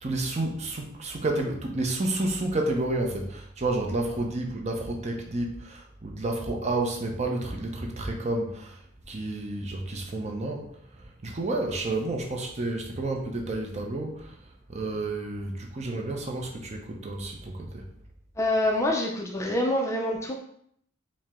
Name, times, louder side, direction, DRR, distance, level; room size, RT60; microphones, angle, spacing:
voice 1, 0.0-8.8 9.1-10.7 11.2-14.3 14.7-17.9, right 2 dB, 30° right, 1 dB, 0.6 m, -30 dB
voice 2, 18.4-20.4, left 1 dB, 15° left, 0 dB, 0.4 m, -26 dB
4.6 x 2.1 x 3.5 m, 0.68 s
head